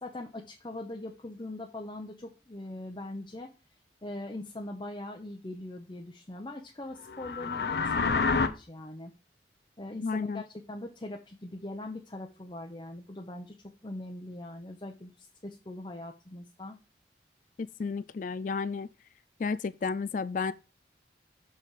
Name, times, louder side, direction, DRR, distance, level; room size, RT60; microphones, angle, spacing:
voice 1, 0.0-3.5 4.0-9.1 9.8-13.5 13.8-16.8, left 1 dB, 25° left, 0.8 m, -41 dB
sound 1, 7.1-8.5, left 4 dB, 65° left, 0.8 m, -27 dB
voice 2, 10.0-10.4 17.6-18.9 19.4-20.5, left 4 dB, 45° left, 0.3 m, -32 dB
7.4 x 4.2 x 4.8 m
head